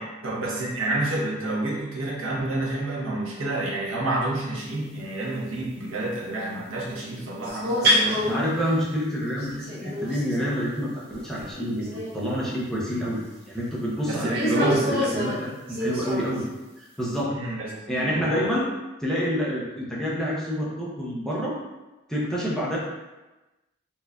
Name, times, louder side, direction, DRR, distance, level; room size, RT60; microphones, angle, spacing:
voice 1, 0.0-8.5 14.0-14.9 17.3-18.6, right 2 dB, 85° right, -3 dB, 0.8 m, -29 dB
sound 1, 7.4-8.5 9.4-10.6 11.1-11.5 11.8-12.2 12.9-13.0 14.2-16.4, equal, 50° right, 0.7 m, -27 dB
voice 2, 8.3-9.5 9.8-16.5 16.8-17.3 17.9-18.7 19.0-21.6 22.1-22.8, equal, ahead, -7 dB, 0.6 m, -28 dB
4.4 x 2.5 x 2.2 m, 1.1 s
head